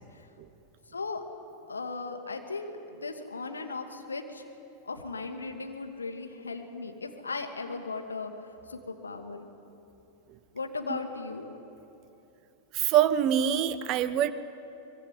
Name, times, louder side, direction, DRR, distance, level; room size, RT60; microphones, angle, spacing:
voice 1, 0.9-1.2 1.7-4.4 4.8-9.5 10.5-11.5, left 3 dB, 75° left, 5 dB, 2.3 m, -37 dB
voice 2, 12.7-14.3, right 10 dB, 40° right, 13 dB, 1.2 m, -24 dB
24.5 x 22.0 x 9.3 m, 2.9 s
figure-of-eight pair, 90°, 0 cm